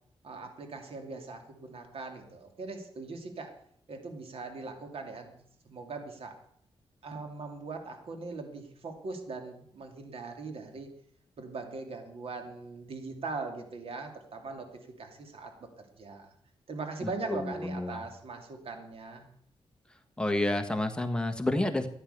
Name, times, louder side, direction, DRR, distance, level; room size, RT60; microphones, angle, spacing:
voice 1, 0.2-3.5 3.9-5.3 5.6-6.4 7.0-10.9 11.4-15.7 16.0-16.3 16.7-19.3, right 3 dB, 65° right, 5 dB, 2.6 m, -40 dB
voice 2, 17.0-18.0 20.2-21.9, left 1 dB, 10° left, 6 dB, 1.5 m, -30 dB
14.5 x 10.0 x 6.7 m, 0.66 s
wide cardioid pair, 110°, 10 cm